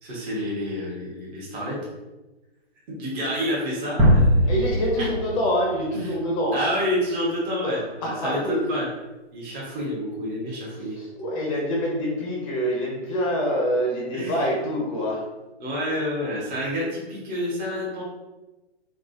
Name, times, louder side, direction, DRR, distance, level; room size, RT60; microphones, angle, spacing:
voice 1, 0.0-1.8 2.9-4.3 6.0-6.1 6.5-8.9 9.3-11.0 14.1-14.4 15.6-18.0, equal, 25° right, -6 dB, 1.3 m, -28 dB
sound 1, 4.0-6.9, equal, 5° right, 0.5 m, -22 dB
voice 2, 4.5-6.6 7.6-8.7 10.8-15.2, equal, 30° left, -2 dB, 0.9 m, -26 dB
3.5 x 3.0 x 2.7 m, 1.1 s
hypercardioid pair, 135°, 33 cm